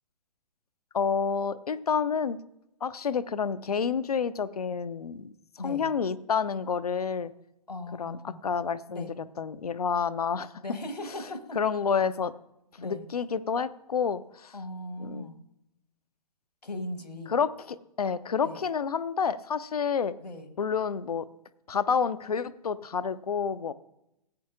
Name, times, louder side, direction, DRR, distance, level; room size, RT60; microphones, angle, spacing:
voice 1, 0.9-2.4 2.8-5.3 5.6-7.3 7.9-9.1 9.4-10.5 11.6-12.3 12.8-14.6 15.0-15.3 17.3-20.1 20.6-21.3 21.7-23.7, left 6 dB, 65° left, 15 dB, 0.5 m, -29 dB
voice 2, 5.6-5.9 7.7-8.4 8.9-9.1 10.5-11.6 12.8-13.1 14.5-15.4 16.6-17.3 18.4-18.6 20.2-20.5, left 1 dB, 80° left, 8 dB, 1.3 m, -38 dB
16.0 x 8.4 x 2.5 m, 0.85 s
figure-of-eight pair, 125°, 21 cm